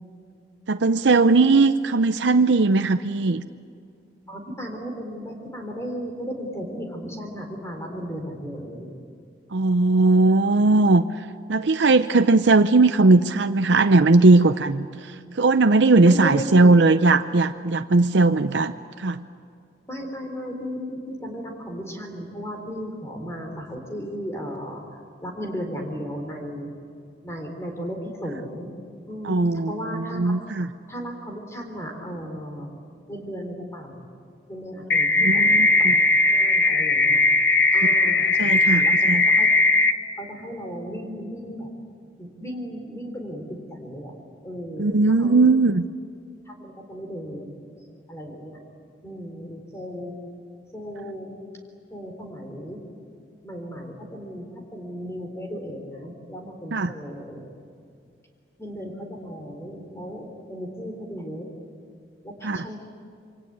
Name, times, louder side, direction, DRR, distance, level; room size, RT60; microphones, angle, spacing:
voice 1, 0.7-3.4 9.5-11.0 11.5-18.7 19.0-19.2 29.2-30.7 35.2-35.9 38.4-39.3 44.8-45.9 56.7-56.9 62.4-62.7, right 3 dB, 90° right, 9 dB, 0.7 m, -18 dB
voice 2, 4.3-8.9 16.0-16.7 19.9-24.8 25.2-26.7 27.2-28.7 29.1-30.4 30.9-32.7 33.1-34.0 34.5-37.2 37.7-38.9 39.3-39.5 40.2-41.7 42.2-43.4 43.7-44.1 44.4-45.6 46.5-47.5 48.1-48.6 49.0-50.1 50.7-51.3 51.9-52.8 53.4-54.4 54.7-57.5 58.6-61.5 62.2-62.8, equal, 15° left, 2 dB, 3.7 m, -35 dB
sound 1, 34.9-39.9, left 2 dB, 85° left, 1.4 m, -18 dB
27.0 x 24.5 x 8.7 m, 2.3 s
head